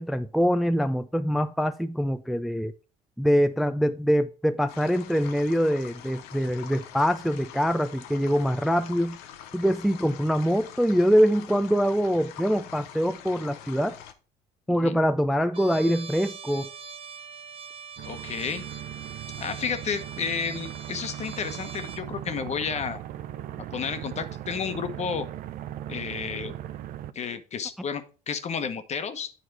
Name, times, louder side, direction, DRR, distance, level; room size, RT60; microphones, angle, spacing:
voice 1, 0.0-2.7 3.2-9.2 9.5-14.0 14.7-16.7, equal, ahead, 0.4 m, -24 dB
sound 1, 4.7-14.1, left 10 dB, 80° left, 0.9 m, -45 dB
voice 2, 14.7-15.0 18.0-18.6 19.4-23.0 23.7-25.3 25.9-26.5 27.1-29.3, left 6 dB, 45° left, 1.1 m, -32 dB
Trumpet, 15.5-22.1, right 5 dB, 35° right, 1.3 m, -42 dB
sound 2, 18.0-27.1, right 12 dB, 65° right, 0.6 m, -38 dB
9.1 x 4.1 x 4.6 m
supercardioid pair, 85°, 16 cm